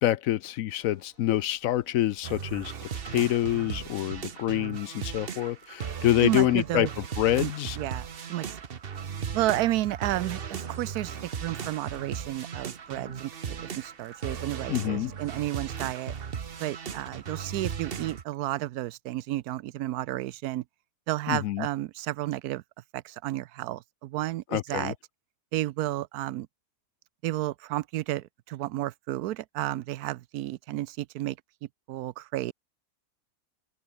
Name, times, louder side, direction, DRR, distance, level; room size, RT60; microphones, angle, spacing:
voice 1, 0.0-7.8 14.7-15.1 21.3-21.7 24.5-24.9, left 13 dB, 70° left, 0.9 m, -27 dB
sound 1, 0.8-17.8, right 2 dB, 55° right, 6.5 m, -63 dB
sound 2, 2.2-18.2, right 7 dB, 40° right, 1.0 m, -37 dB
voice 2, 6.2-6.9 7.4-7.5 7.8-8.6 9.3-16.1 16.6-20.6 21.1-22.6 22.9-24.9 25.5-26.5 27.2-31.4 31.9-32.5, right 15 dB, 80° right, 1.1 m, -32 dB
sound 3, 10.5-11.0 11.6-12.0 14.1-14.6 15.1-15.6, right 2 dB, 25° right, 3.9 m, -60 dB
omnidirectional pair, 1.7 m